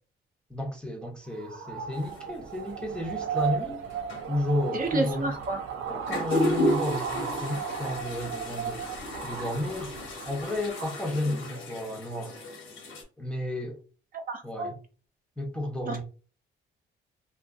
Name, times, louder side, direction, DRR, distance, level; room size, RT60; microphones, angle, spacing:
voice 1, 0.5-3.8 4.3-5.3 5.9-8.9 9.2-9.9 10.3-12.4 13.2-13.8 14.4-14.8 15.4-16.0, left 1 dB, 5° left, 0.6 m, -32 dB
sound 1, 1.3-11.0, right 7 dB, 85° right, 0.5 m, -35 dB
sound 2, 2.0-2.2 3.4-3.5 3.9-4.3 5.4-5.5 5.9-13.0, left 1 dB, 90° left, 1.0 m, -33 dB
voice 2, 4.7-5.6 14.1-14.7 15.9-16.0, right 2 dB, 45° right, 0.6 m, -30 dB
2.5 x 2.4 x 2.3 m
cardioid pair, 90°, 20 cm